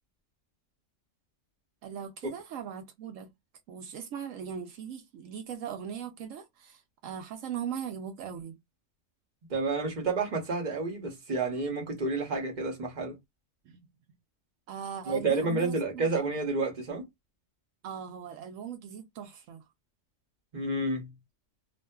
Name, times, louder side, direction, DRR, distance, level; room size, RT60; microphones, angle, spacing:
voice 1, 1.8-3.3 3.7-8.6 13.7-13.9 14.7-16.1 17.8-19.6, right 8 dB, 80° right, 1.0 m, -39 dB
voice 2, 9.5-13.2 15.1-17.0 20.5-21.1, right 3 dB, 40° right, 1.1 m, -30 dB
2.7 x 2.4 x 2.2 m
omnidirectional pair, 1.3 m